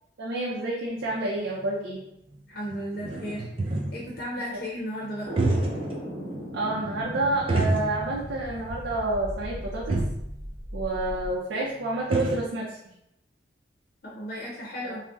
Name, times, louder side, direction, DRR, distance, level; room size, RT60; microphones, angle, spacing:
voice 1, 0.2-2.0 4.5-4.6 6.5-10.0 10.7-12.8 14.8-15.0, right 2 dB, 90° right, -4 dB, 0.5 m, -29 dB
sound 1, 1.1-1.2 1.6-1.7 2.3-2.4 2.7-4.1 5.2-6.0 6.3-6.4 7.5-8.3 8.6-8.7 9.6-9.7 9.9-10.2 11.6-11.7 11.8-12.5, right 2 dB, 30° right, 0.4 m, -27 dB
voice 2, 2.5-5.4 14.0-15.0, equal, 55° left, -5 dB, 0.6 m, -35 dB
sound 2, 5.2-11.3, equal, 50° right, 1.0 m, -37 dB
2.5 x 2.1 x 3.5 m, 0.79 s
head